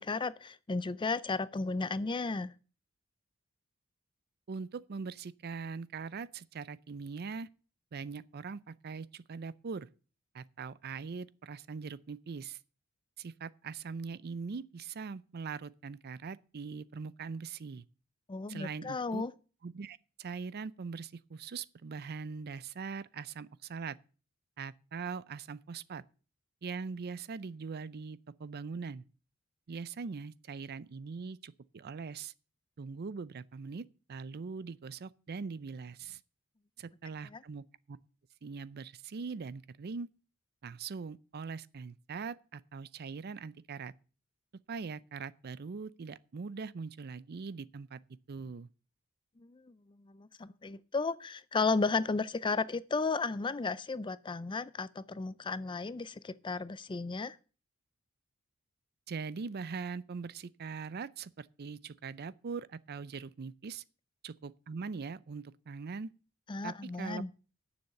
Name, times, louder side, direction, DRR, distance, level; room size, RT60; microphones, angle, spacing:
voice 1, 0.0-2.5 18.3-19.3 37.2-37.4 49.4-57.4 66.5-67.3, left 4 dB, 25° left, 0.4 m, -34 dB
voice 2, 4.5-7.5 7.9-9.9 10.3-12.6 13.2-17.8 18.5-19.2 19.6-24.0 24.6-26.0 26.6-29.0 29.7-32.3 32.8-36.2 36.8-38.0 38.4-40.1 40.6-43.9 44.7-48.0 48.3-48.7 59.1-63.8 64.2-66.1 66.6-67.2, right 5 dB, 50° right, 0.5 m, -41 dB
9.6 x 7.1 x 7.8 m
head